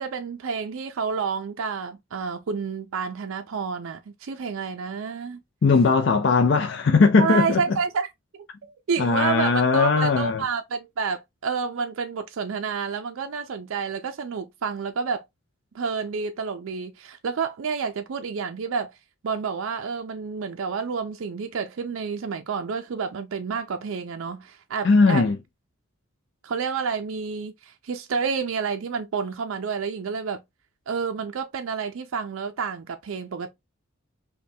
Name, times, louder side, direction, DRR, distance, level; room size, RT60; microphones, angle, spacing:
voice 1, 0.0-5.4 7.2-15.2 15.7-19.0 19.2-25.3 26.4-30.4 30.9-33.5, right 5 dB, 75° right, 0.4 m, -29 dB
voice 2, 5.6-7.6 9.0-10.4 24.8-25.4, left 4 dB, 55° left, 0.4 m, -19 dB
5.3 x 2.2 x 2.7 m
head